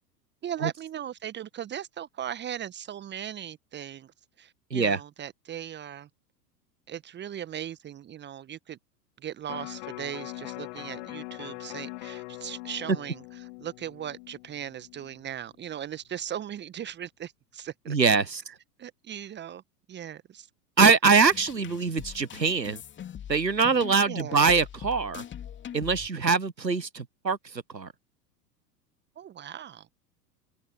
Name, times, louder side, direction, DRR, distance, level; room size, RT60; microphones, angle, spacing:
voice 1, 0.4-6.1 6.9-8.8 9.2-18.0 18.8-19.6 19.9-20.5 24.1-24.5 29.1-30.0, right 10 dB, 20° right, 1.5 m, -38 dB
Electric guitar, 9.5-15.7 16.1-16.2, left 25 dB, 45° left, 2.7 m, -42 dB
voice 2, 17.9-18.4 20.8-22.8 23.3-25.2 25.7-27.9, right 5 dB, 90° right, 1.0 m, -23 dB
sound 1, 21.0-26.1, left 9 dB, 20° left, 3.0 m, -42 dB
figure-of-eight pair, 90°, 49 cm